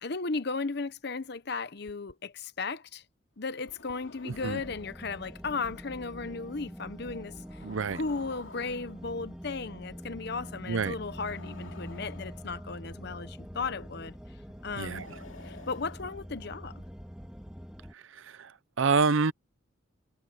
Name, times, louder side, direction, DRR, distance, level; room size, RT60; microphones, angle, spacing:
voice 1, 0.0-3.0 3.4-7.6 7.9-14.2 14.6-15.0 15.4-16.8, left 4 dB, 55° left, 0.9 m, -35 dB
sound 1, 1.9-2.1 3.4-5.0 5.5-5.7 7.3-9.3 10.9-12.9 14.5-16.5, left 3 dB, 80° left, 2.6 m, -51 dB
voice 2, 4.2-4.6 7.6-8.0 10.7-10.9 14.8-15.1 17.9-18.5 18.8-19.3, right 4 dB, 75° right, 0.6 m, -28 dB
sound 2, 4.3-17.9, equal, 5° right, 2.5 m, -45 dB
head